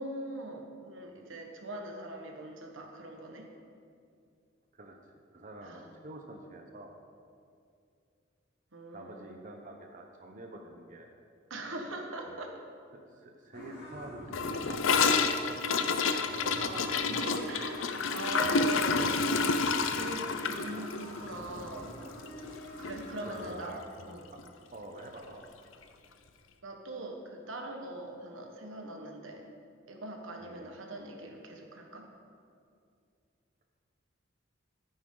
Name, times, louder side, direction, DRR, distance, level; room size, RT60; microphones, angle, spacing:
voice 1, 0.0-3.5 5.6-5.9 8.7-9.4 11.5-12.6 13.1-13.3 16.1-19.1 19.9-22.0 22.8-23.8 24.0-24.2 26.6-29.5 29.9-32.1, right 2 dB, 85° right, 2 dB, 1.5 m, -42 dB
voice 2, 5.3-6.9 8.9-11.1 12.3-12.4 12.9-15.6 23.2-23.8 24.7-25.4 30.4-30.7, right 1 dB, 45° right, 2 dB, 0.9 m, -47 dB
sound 1, 13.5-23.5, equal, 60° left, 3.0 m, -46 dB
Gurgling / Toilet flush, 14.3-22.6 22.8-23.0 23.3-23.7 24.0-24.1 24.4-24.5 25.4-25.5, left 4 dB, 85° left, 0.7 m, -29 dB
13.5 x 9.6 x 3.9 m, 2.4 s
head